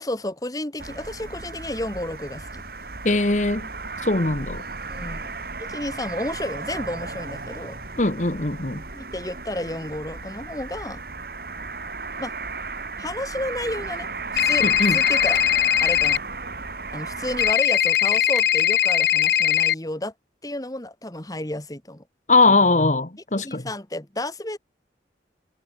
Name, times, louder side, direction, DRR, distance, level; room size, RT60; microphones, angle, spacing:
voice 1, 0.0-2.6 4.9-5.3 5.6-7.8 8.9-11.0 12.2-12.3 13.0-14.1 14.4-15.4 15.8-16.2 16.9-20.1 20.4-22.0 23.4-24.6, left 1 dB, 20° left, 1.8 m, -31 dB
sound 1, 0.8-17.5, right 4 dB, 55° right, 2.7 m, -35 dB
voice 2, 3.0-3.7 4.0-4.6 8.0-8.8 14.6-15.0 22.3-23.6, left 3 dB, 45° left, 1.5 m, -20 dB
sound 2, 14.4-16.2 17.4-19.7, left 11 dB, 60° left, 0.3 m, -20 dB
head